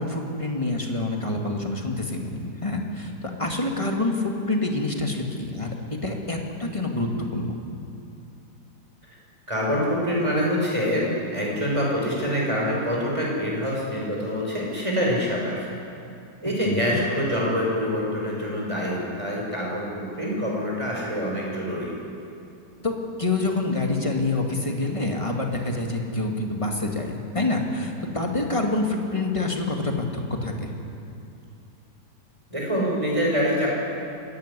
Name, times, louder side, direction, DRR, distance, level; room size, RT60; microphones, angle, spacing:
voice 1, 0.0-5.7 6.0-7.6 16.6-17.0 22.8-30.1 30.4-30.7, left 2 dB, 20° left, 1 dB, 2.3 m, -27 dB
voice 2, 9.5-15.7 16.4-21.9 32.5-33.7, equal, 20° right, -3 dB, 5.7 m, -25 dB
24.0 x 13.0 x 9.8 m, 2.6 s
omnidirectional pair, 1.8 m